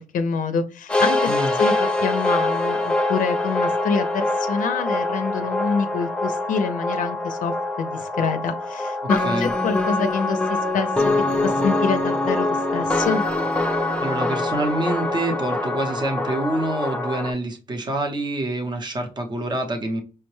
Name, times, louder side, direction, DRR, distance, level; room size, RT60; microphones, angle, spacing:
voice 1, 0.0-1.3 1.6-10.9 11.4-13.2, left 5 dB, 65° left, 8 dB, 0.4 m, -26 dB
sound 1, 0.9-17.3, left 2 dB, 5° left, 0.5 m, -24 dB
voice 2, 14.0-20.0, right 1 dB, 30° right, 5 dB, 0.8 m, -26 dB
5.6 x 2.1 x 3.1 m, 0.35 s
cardioid pair, 135°, 14 cm